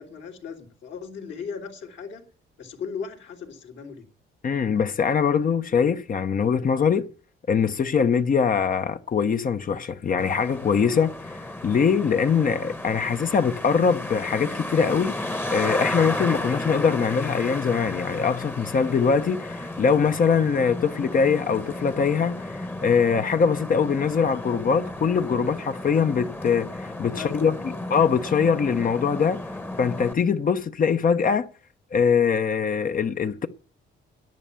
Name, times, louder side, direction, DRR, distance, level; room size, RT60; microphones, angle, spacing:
voice 1, 0.0-2.2 2.6-4.1 27.1-27.9, left 6 dB, 65° left, 3.1 m, -37 dB
voice 2, 4.4-7.1 7.5-27.5 27.9-29.4 29.8-31.5 31.9-33.5, left 6 dB, 45° left, 0.9 m, -23 dB
Traffic noise roadway noise, 10.2-30.1, left 1 dB, 10° left, 1.1 m, -33 dB
11.0 x 9.6 x 7.0 m
cardioid pair, 90°, 20 cm